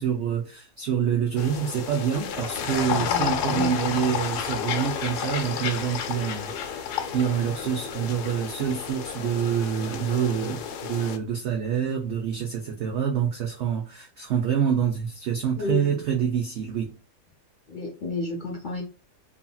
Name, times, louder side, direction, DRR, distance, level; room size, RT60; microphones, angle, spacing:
voice 1, 0.0-16.9, right 8 dB, 75° right, 0.6 m, -27 dB
sound 1, 1.4-11.2, left 8 dB, 80° left, 1.1 m, -31 dB
voice 2, 2.7-3.7 15.6-15.9 17.7-18.8, left 3 dB, 50° left, 0.6 m, -32 dB
2.8 x 2.7 x 2.2 m
omnidirectional pair, 1.8 m